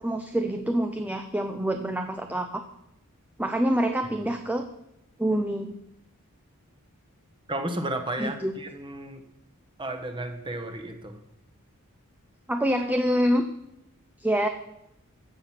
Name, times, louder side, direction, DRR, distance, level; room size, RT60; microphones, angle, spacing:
voice 1, 0.0-2.6 3.4-4.7 5.2-5.8 8.2-8.5 12.5-13.5 14.2-14.5, equal, 5° right, 6 dB, 0.6 m, -26 dB
voice 2, 7.5-9.2 9.8-11.2, right 1 dB, 25° right, 6 dB, 1.3 m, -33 dB
14.5 x 7.5 x 5.9 m, 0.84 s
head